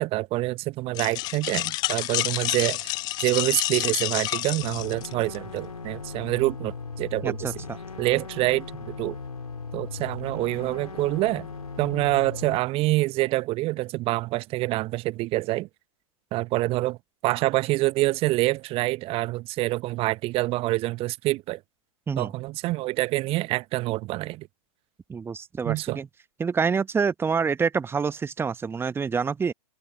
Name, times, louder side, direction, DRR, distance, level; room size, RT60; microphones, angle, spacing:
voice 1, 0.0-2.9 3.2-7.5 8.0-9.2 9.7-11.5 11.8-15.7 16.3-17.0 17.2-21.6 22.2-24.5 25.6-26.0, right 19 dB, 30° right, 1.2 m, -26 dB
sound 1, 0.9-5.4, left 19 dB, 20° left, 0.4 m, -29 dB
sound 2, 4.6-12.6, left 4 dB, 75° left, 3.0 m, -38 dB
voice 2, 7.2-7.5 22.1-22.3 25.1-26.1 26.4-29.5, right 5 dB, 10° right, 1.3 m, -27 dB
figure-of-eight pair, 100°, 19 cm